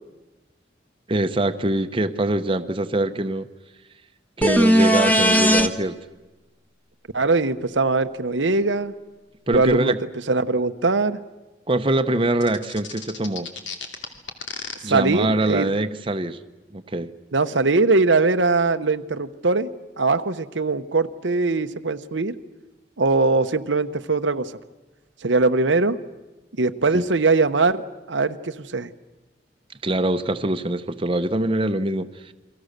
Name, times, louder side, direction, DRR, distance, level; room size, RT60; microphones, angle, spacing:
voice 1, 1.1-3.5 4.4-6.0 9.5-10.0 11.7-13.5 14.8-16.4 16.7-17.1 26.9-27.1 29.8-32.3, right 1 dB, 30° right, 8 dB, 0.9 m, -23 dB
sound 1, 4.4-5.7 9.5-9.6, equal, 10° left, 1.1 m, -17 dB
voice 2, 7.1-8.9 9.5-9.9 10.3-11.2 14.8-15.7 17.3-19.7 20.0-22.3 23.0-24.5 25.2-26.0 26.6-27.8 28.1-28.9, right 3 dB, 90° right, 9 dB, 1.0 m, -21 dB
sound 2, 12.4-14.7, left 6 dB, 80° left, 2.8 m, -34 dB
29.5 x 23.0 x 6.7 m, 1.1 s
head